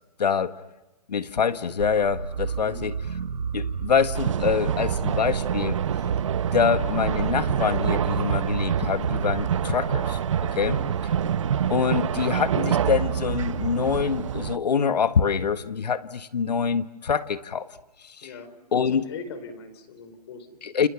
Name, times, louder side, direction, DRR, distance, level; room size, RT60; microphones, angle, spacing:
voice 1, 0.2-0.5 1.1-3.0 3.5-5.8 6.5-10.2 10.5-10.7 11.7-17.7 18.0-18.3 18.7-19.1 20.6-20.9, left 6 dB, 80° left, 11 dB, 1.6 m, -25 dB
sound 1, 1.8-12.7, right 6 dB, 85° right, 1.6 m, -33 dB
voice 2, 2.6-2.9 10.6-10.8 18.2-18.5 18.8-20.6, left 5 dB, 40° left, 10 dB, 4.0 m, -39 dB
sound 2, 4.1-14.6, right 8 dB, 50° right, 1.0 m, -27 dB
30.0 x 28.5 x 6.1 m, 1.0 s
hypercardioid pair, 165°, 21 cm